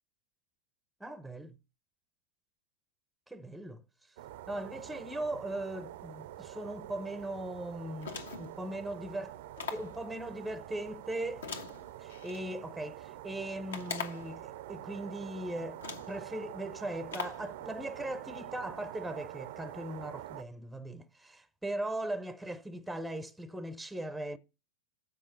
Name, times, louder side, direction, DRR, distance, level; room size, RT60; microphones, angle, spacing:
voice 1, 1.0-1.6 3.3-3.8 4.5-9.4 9.7-11.5 12.0-24.4, right 1 dB, 5° right, 0.6 m, -39 dB
sound 1, 4.2-20.4, right 13 dB, 55° right, 0.4 m, -46 dB
sound 2, 8.0-8.6 9.6-10.0 11.4-12.4 13.7-14.4 15.2-15.3 15.8-16.2 17.1-17.5, left 5 dB, 65° left, 1.1 m, -41 dB
7.4 x 4.8 x 6.4 m
figure-of-eight pair, 90°, 0 cm